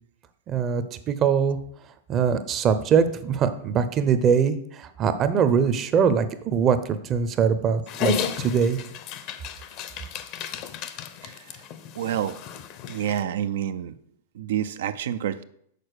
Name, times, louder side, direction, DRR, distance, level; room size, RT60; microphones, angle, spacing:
voice 1, 0.5-1.6 2.1-8.8, right 7 dB, 30° right, 11 dB, 0.7 m, -22 dB
Dog, 7.9-13.2, left 7 dB, 45° left, 0.7 m, -33 dB
voice 2, 12.0-12.4 12.9-13.9 14.4-15.4, right 10 dB, 70° right, 12 dB, 0.5 m, -28 dB
6.6 x 4.3 x 6.6 m, 0.69 s
hypercardioid pair, 125°, 0 cm